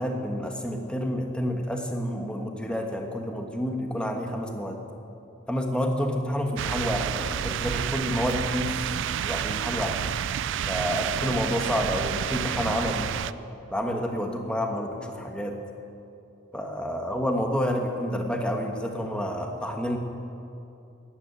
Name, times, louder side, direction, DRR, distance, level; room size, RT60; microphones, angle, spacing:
voice 1, 0.0-4.8 5.5-8.7 9.2-10.0 10.7-13.1 13.7-15.6 16.5-20.0, equal, 5° left, 2 dB, 1.3 m, -29 dB
sound 1, 6.6-13.3, right 9 dB, 60° right, 0.4 m, -29 dB
14.5 x 9.7 x 9.2 m, 2.7 s
head